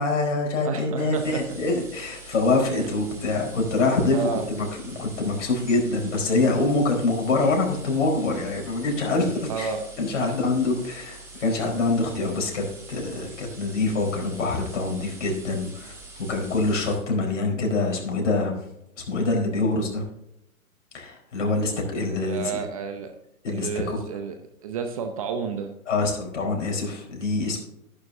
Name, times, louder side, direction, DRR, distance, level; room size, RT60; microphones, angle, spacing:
voice 1, 0.0-9.7 10.0-16.0 16.3-18.6 19.1-20.1 20.9-22.6 23.4-24.0 25.9-27.6, left 3 dB, 55° left, 0 dB, 4.5 m, -25 dB
voice 2, 0.6-1.4 2.7-2.9 4.1-4.5 9.5-9.8 10.2-10.3 22.1-23.1 23.5-24.4 24.6-25.8, right 6 dB, 25° right, 7 dB, 0.7 m, -31 dB
sound 1, 1.1-17.0, right 3 dB, 5° right, 2.1 m, -44 dB
13.0 x 11.0 x 2.7 m, 0.81 s
hypercardioid pair, 145°, 43 cm